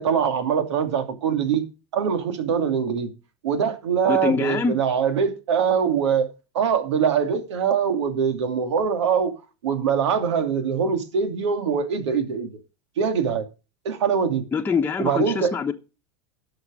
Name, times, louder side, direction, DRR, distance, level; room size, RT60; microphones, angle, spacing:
voice 1, 0.0-1.6 1.9-3.1 3.4-6.3 6.5-9.3 9.6-12.5 13.0-13.5 13.8-14.4 15.0-15.5, right 7 dB, 85° right, 2.5 m, -23 dB
voice 2, 4.1-4.8 14.5-15.7, left 5 dB, 15° left, 1.1 m, -24 dB
11.5 x 6.6 x 6.2 m
supercardioid pair, 120°, 14 cm